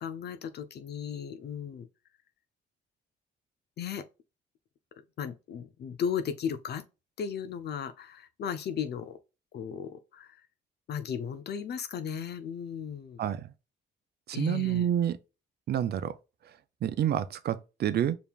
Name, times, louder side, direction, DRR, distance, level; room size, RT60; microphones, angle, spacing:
voice 1, 0.0-1.9 3.8-4.0 5.2-6.8 7.2-9.2 9.5-10.4 10.9-13.2 14.3-14.9, left 7 dB, 55° left, 0.5 m, -36 dB
voice 2, 14.3-15.2 15.7-16.1 16.8-18.2, right 10 dB, 55° right, 0.5 m, -28 dB
5.2 x 2.9 x 2.3 m
cardioid pair, 90°, 20 cm